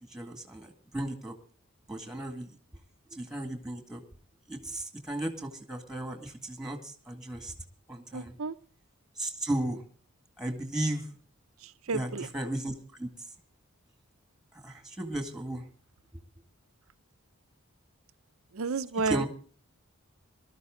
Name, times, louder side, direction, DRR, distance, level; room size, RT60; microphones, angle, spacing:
voice 1, 0.1-1.3 1.9-2.5 3.1-4.0 4.5-7.5 7.9-8.3 9.2-9.8 10.4-11.1 11.9-12.7 13.0-13.1 14.6-15.6 19.1-19.3, right 1 dB, ahead, 5 dB, 1.9 m, -35 dB
voice 2, 8.1-8.5 11.6-12.3 18.5-19.3, right 4 dB, 70° right, 14 dB, 0.6 m, -31 dB
20.0 x 13.0 x 3.8 m, 0.42 s
head